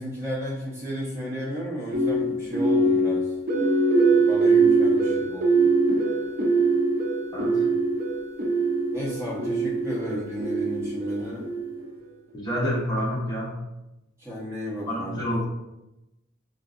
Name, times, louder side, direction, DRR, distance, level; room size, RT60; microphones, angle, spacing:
voice 1, 0.0-3.3 4.1-5.8 8.9-11.4 14.2-15.3, equal, 10° right, -6 dB, 0.9 m, -33 dB
sound 1, 1.9-12.0, right 3 dB, 45° right, 0.5 m, -23 dB
voice 2, 7.3-7.7 12.3-13.6 14.9-15.5, equal, 20° left, -5 dB, 0.8 m, -28 dB
4.0 x 2.5 x 2.5 m, 0.96 s
head